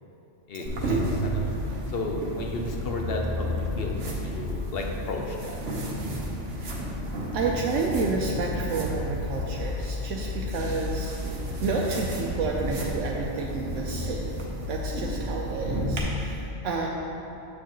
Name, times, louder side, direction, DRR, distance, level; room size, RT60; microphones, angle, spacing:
voice 1, 0.5-5.6, left 2 dB, 60° left, 1 dB, 0.8 m, -34 dB
sound 1, 0.7-16.0, left 1 dB, 55° right, 1.1 m, -31 dB
voice 2, 7.3-16.9, right 4 dB, 85° right, -2 dB, 0.9 m, -30 dB
7.3 x 6.8 x 3.0 m, 2.9 s
omnidirectional pair, 1.3 m